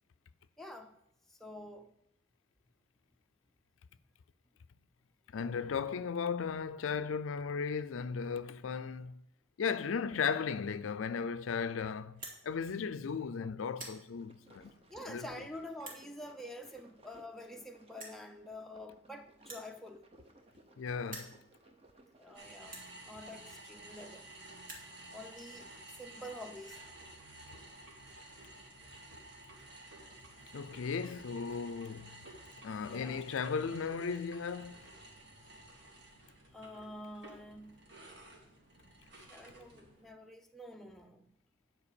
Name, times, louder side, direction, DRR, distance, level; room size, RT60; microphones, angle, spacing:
voice 1, 0.6-1.0 1.3-1.9 14.9-20.1 22.1-22.8 23.0-24.3 25.1-25.7 26.0-26.8 32.9-33.3 36.5-37.9 39.3-41.3, left 1 dB, ahead, 0.5 m, -47 dB
voice 2, 5.3-9.2 9.6-14.7 15.1-15.3 20.8-21.4 30.5-32.3 32.6-34.8, left 6 dB, 85° left, 0.4 m, -36 dB
sound 1, 12.1-12.4 13.1-13.3 13.6-14.0 14.8-14.9 15.8-16.0 17.1-17.2 17.4-17.5 18.0-18.2 19.4-20.7 21.0-21.4 22.1-22.2 22.6-22.9 23.8-23.9 24.1-24.2 24.5-24.9, right 2 dB, 45° right, 2.3 m, -48 dB
sound 2, 14.1-22.8, right 1 dB, 30° right, 0.9 m, -61 dB
sound 3, 22.3-40.1, right 2 dB, 60° right, 1.9 m, -53 dB
9.7 x 4.7 x 6.8 m
head